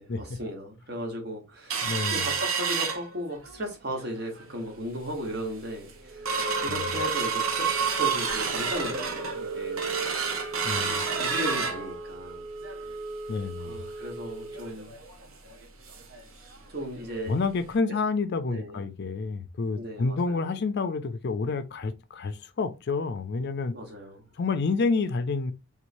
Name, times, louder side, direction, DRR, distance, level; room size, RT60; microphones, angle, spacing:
voice 1, 0.0-9.8 10.7-10.9 11.2-12.5 13.6-15.0 16.4-17.4 17.9-18.0 18.5-18.8 19.7-20.6 23.7-24.3, equal, 50° right, 1.3 m, -36 dB
sound 1, 1.7-3.6 4.0-4.1 4.4-4.8 5.2-5.3 5.7-16.2 16.5-16.6 17.0-17.2 17.7-17.8, right 5 dB, 80° right, 0.8 m, -30 dB
voice 2, 1.8-2.3 6.7-6.8 10.6-10.9 13.3-13.8 17.2-23.7 24.4-25.5, left 4 dB, 55° left, 0.4 m, -29 dB
3.6 x 3.1 x 2.6 m
head